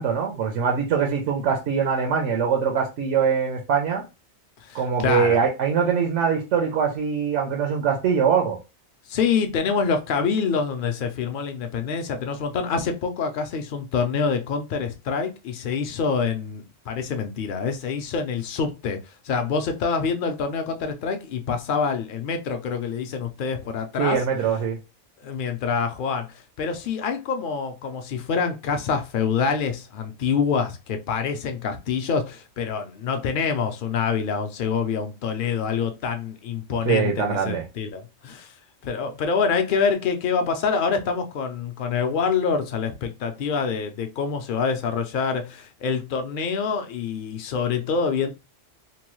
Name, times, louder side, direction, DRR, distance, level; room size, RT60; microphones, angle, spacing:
voice 1, 0.0-4.0 4.7-8.6 24.0-24.8 36.9-37.6, right 7 dB, 85° right, 0.9 m, -23 dB
voice 2, 4.6-5.4 9.1-24.2 25.2-38.5 38.8-48.3, left 5 dB, 60° left, 0.6 m, -26 dB
2.9 x 2.2 x 3.0 m
omnidirectional pair, 1.2 m